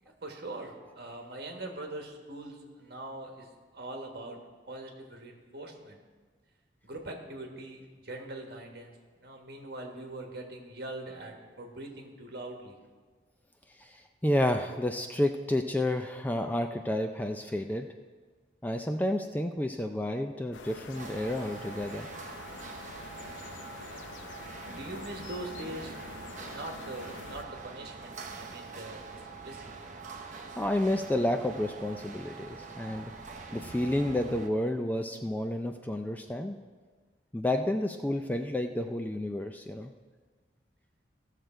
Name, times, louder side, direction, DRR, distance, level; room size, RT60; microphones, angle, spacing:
voice 1, 0.0-4.4 4.7-6.0 6.8-8.9 9.2-12.8 24.7-25.9 26.3-29.6, right 1 dB, 60° right, 2 dB, 1.5 m, -42 dB
voice 2, 13.8-17.9 18.6-22.1 30.6-33.1 33.5-36.6 37.3-39.9, left 1 dB, 10° left, 6 dB, 0.4 m, -30 dB
sound 1, 20.5-27.4, left 5 dB, 85° left, 0.6 m, -47 dB
sound 2, 20.9-34.5, right 4 dB, 40° right, 0.9 m, -44 dB
16.0 x 6.6 x 4.4 m, 1.4 s
head